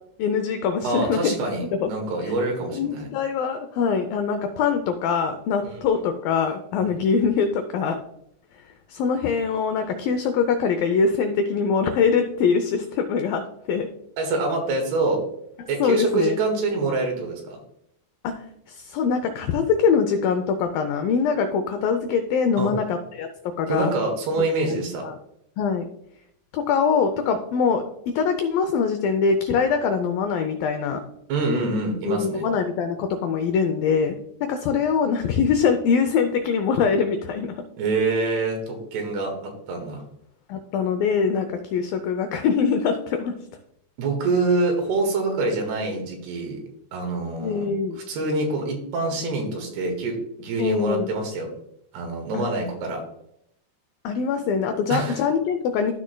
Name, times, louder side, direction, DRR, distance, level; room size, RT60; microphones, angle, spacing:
voice 1, 0.2-1.4 1.8-1.9 2.7-8.0 8.9-13.4 13.7-13.9 15.8-16.4 18.2-18.3 18.7-23.3 23.6-23.9 24.6-25.2 25.6-25.9 26.5-31.0 32.1-37.6 40.5-43.4 47.4-48.0 50.6-51.1 52.3-52.4 54.0-55.9, left 6 dB, 90° left, 7 dB, 2.0 m, -23 dB
voice 2, 0.8-3.1 5.6-5.8 6.8-6.9 14.2-15.2 15.7-17.6 22.6-22.7 23.7-25.1 31.3-32.5 37.8-40.0 44.0-46.6 46.9-47.7 48.1-51.5 51.9-53.0 54.9-55.2, right 3 dB, 75° right, 2 dB, 3.5 m, -25 dB
13.0 x 6.2 x 2.2 m, 0.76 s
omnidirectional pair, 4.9 m